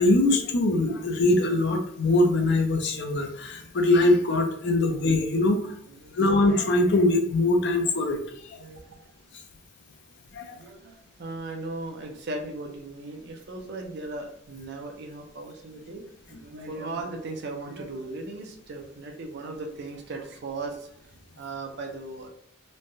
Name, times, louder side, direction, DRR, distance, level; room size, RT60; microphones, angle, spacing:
voice 1, 0.0-5.7 6.1-8.2 8.5-8.6 10.3-10.6, left 2 dB, 60° left, 4 dB, 0.6 m, -22 dB
voice 2, 5.9-6.4 8.5-9.1 10.5-21.0 21.4-22.3, right 2 dB, 55° right, 3 dB, 0.5 m, -37 dB
3.1 x 2.2 x 2.6 m, 0.69 s
head